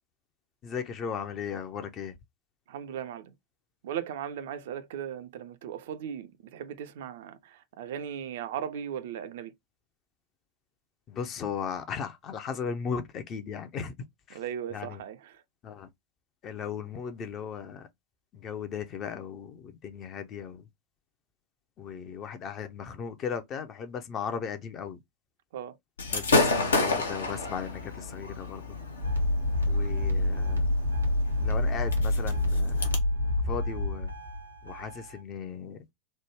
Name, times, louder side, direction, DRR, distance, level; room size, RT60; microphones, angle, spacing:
voice 1, 0.6-2.2 11.1-13.9 14.3-14.4 14.7-15.0 15.6-15.9 16.4-17.9 18.3-20.7 21.8-25.0 26.1-28.8 29.7-30.7 31.4-32.9 33.4-34.1 34.6-35.8, left 7 dB, 30° left, 0.5 m, -36 dB
voice 2, 2.7-3.3 3.8-9.5 14.3-15.3 25.5-25.7, right 9 dB, 55° right, 0.4 m, -37 dB
Gunshot gunfire / Fireworks, 26.0-33.0, left 3 dB, 70° left, 0.7 m, -31 dB
sound 1, 29.0-35.2, left 1 dB, 90° right, 0.9 m, -27 dB
3.1 x 2.1 x 3.1 m
figure-of-eight pair, 90°, 0 cm